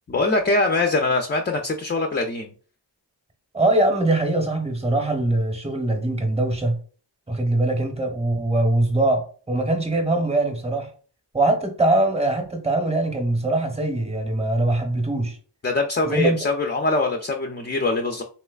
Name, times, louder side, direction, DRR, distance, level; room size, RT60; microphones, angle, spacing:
voice 1, 0.1-2.5 15.6-18.2, left 3 dB, 25° left, 0.4 m, -23 dB
voice 2, 3.5-6.8 7.3-10.9 11.3-15.4 16.0-16.4, right 2 dB, 15° right, 0.8 m, -22 dB
3.2 x 3.0 x 2.3 m
wide cardioid pair, 50°, 44 cm